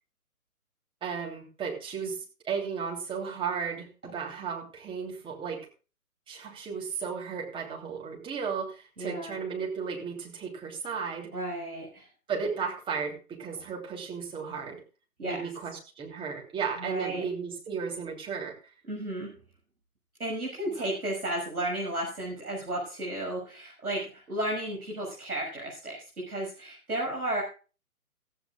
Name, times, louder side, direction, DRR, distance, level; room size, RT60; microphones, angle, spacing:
voice 1, 1.0-2.2 2.4-5.7 6.3-11.3 12.3-14.8 15.2-18.7, right 6 dB, 10° right, 0 dB, 3.1 m, -34 dB
voice 2, 9.0-9.4 11.3-12.1 13.6-13.7 15.2-15.4 16.8-17.2 18.9-19.3 20.2-27.4, right 1 dB, 80° right, -1 dB, 6.6 m, -33 dB
15.5 x 15.0 x 2.3 m, 0.34 s
figure-of-eight pair, 135°, 44 cm